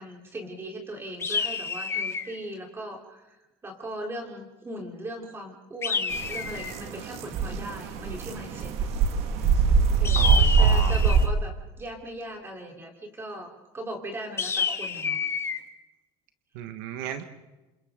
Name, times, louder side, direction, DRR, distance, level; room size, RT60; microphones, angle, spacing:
voice 1, 0.0-8.9 10.0-15.2, right 1 dB, 20° right, 1 dB, 3.9 m, -39 dB
sound 1, 1.2-2.4 5.8-6.8 10.0-11.3 14.4-15.6, left 5 dB, 20° left, 1.3 m, -29 dB
sound 2, 6.1-11.3, right 5 dB, 60° right, 1.9 m, -23 dB
voice 2, 10.1-10.9 16.5-17.2, right 9 dB, 80° right, 8 dB, 1.6 m, -34 dB
28.0 x 26.0 x 3.9 m, 1.1 s
supercardioid pair, 120°, 12 cm